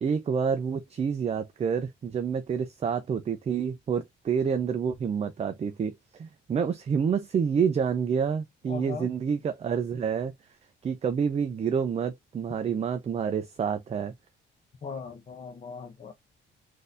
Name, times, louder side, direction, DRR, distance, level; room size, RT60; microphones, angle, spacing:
voice 1, 0.0-10.3 10.8-14.1, right 6 dB, 30° right, 0.4 m, -28 dB
voice 2, 8.7-9.1 14.8-16.1, left 5 dB, 35° left, 0.6 m, -39 dB
3.8 x 2.6 x 2.5 m
cardioid pair, 90°, 20 cm